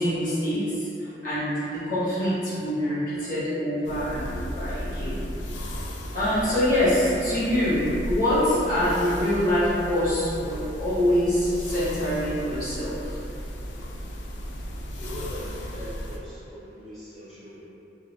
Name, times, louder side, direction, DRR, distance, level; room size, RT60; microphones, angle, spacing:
voice 1, 0.0-5.2 6.1-13.2, left 1 dB, 50° left, -11 dB, 1.0 m, -25 dB
sound 1, 3.8-16.2, equal, 85° left, 0.3 m, -35 dB
voice 2, 15.0-17.7, equal, ahead, -14 dB, 0.5 m, -40 dB
2.4 x 2.3 x 2.9 m, 2.8 s
head